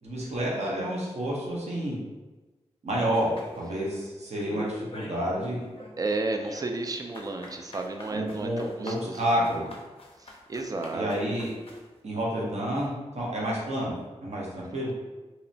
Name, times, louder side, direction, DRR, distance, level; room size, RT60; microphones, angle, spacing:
voice 1, 0.0-2.0 2.8-5.6 8.1-9.7 10.9-11.5 12.0-14.9, equal, 70° right, -4 dB, 0.7 m, -29 dB
sound 1, 3.1-4.1 4.4-5.3 5.6-11.9, left 2 dB, 55° left, 0.5 m, -44 dB
voice 2, 6.0-9.5 10.2-11.3, right 2 dB, 30° right, 4 dB, 0.3 m, -33 dB
2.7 x 2.0 x 2.6 m, 1.2 s
cardioid pair, 60°, 12 cm